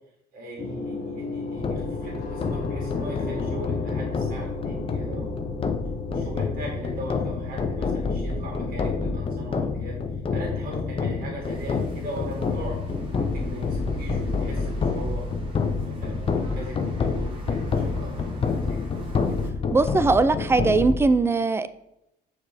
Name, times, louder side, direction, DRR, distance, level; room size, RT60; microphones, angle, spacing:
voice 1, 0.3-5.5 6.1-9.9 10.3-12.8 13.1-17.4 17.7-18.8, right 1 dB, 60° right, -2 dB, 2.4 m, -39 dB
sound 1, 0.6-16.2, left 3 dB, 55° left, 1.3 m, -37 dB
sound 2, 1.6-21.0, left 4 dB, 35° left, 0.6 m, -28 dB
sound 3, 11.4-19.5, equal, 30° right, 1.5 m, -41 dB
voice 2, 19.7-21.7, right 3 dB, 15° right, 13 dB, 0.3 m, -20 dB
6.5 x 4.7 x 3.4 m, 0.85 s
cardioid pair, 110°, 17 cm